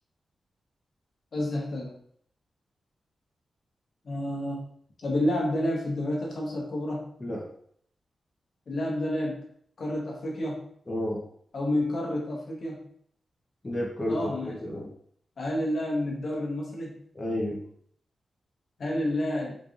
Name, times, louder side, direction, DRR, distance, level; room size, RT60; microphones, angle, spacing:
voice 1, 1.3-2.0 4.0-4.7 5.0-7.1 8.7-9.4 9.8-10.7 11.5-12.9 14.1-14.6 15.4-17.0 18.8-19.6, left 1 dB, 60° left, -2 dB, 0.9 m, -29 dB
voice 2, 10.9-11.2 13.6-14.9 17.1-17.6, left 1 dB, 25° left, -3 dB, 0.8 m, -31 dB
3.9 x 3.3 x 2.5 m, 0.64 s
wide cardioid pair, 105°, 0 cm